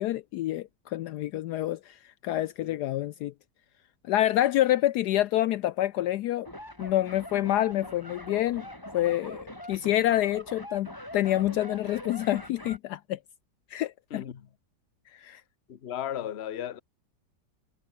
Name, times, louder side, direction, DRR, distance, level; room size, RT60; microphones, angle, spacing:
voice 1, 0.0-3.3 4.0-6.5 6.8-8.7 8.9-13.2 13.7-14.2 15.1-15.4, left 13 dB, 75° left, 1.1 m, -27 dB
sound 1, 6.4-12.8, left 1 dB, 10° left, 4.6 m, -43 dB
voice 2, 14.1-14.5 15.7-16.8, left 10 dB, 45° left, 1.1 m, -35 dB
omnidirectional pair, 1.9 m